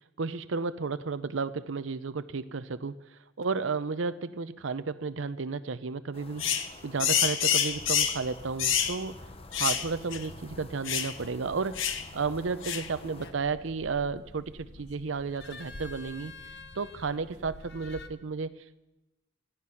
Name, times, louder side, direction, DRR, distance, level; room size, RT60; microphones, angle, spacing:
voice 1, 0.2-3.0 3.4-9.2 9.5-11.8 12.1-16.3 16.8-18.9, right 4 dB, 75° right, 13 dB, 0.6 m, -33 dB
sound 1, 6.1-13.3, left 2 dB, 30° left, 0.9 m, -48 dB
sound 2, 6.4-6.7 7.0-8.2 8.6-9.0 9.5-9.9 10.1-10.2 10.9-11.1 11.8-12.0 12.6-12.9, left 8 dB, 90° left, 1.1 m, -27 dB
sound 3, 11.7-18.1, left 2 dB, 60° left, 1.1 m, -48 dB
16.0 x 14.0 x 5.7 m, 1.0 s
head